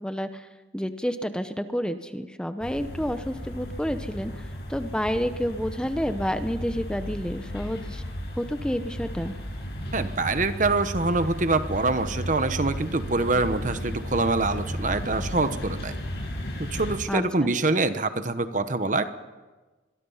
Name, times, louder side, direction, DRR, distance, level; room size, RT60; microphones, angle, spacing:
voice 1, 0.0-8.0 8.4-9.4 17.1-17.5, equal, 5° left, 9 dB, 0.8 m, -30 dB
sound 1, 2.6-17.0, equal, 60° left, 6.6 m, -34 dB
voice 2, 9.9-16.0 16.7-19.0, right 3 dB, 40° right, 10 dB, 1.1 m, -25 dB
26.0 x 23.0 x 5.7 m, 1.2 s
head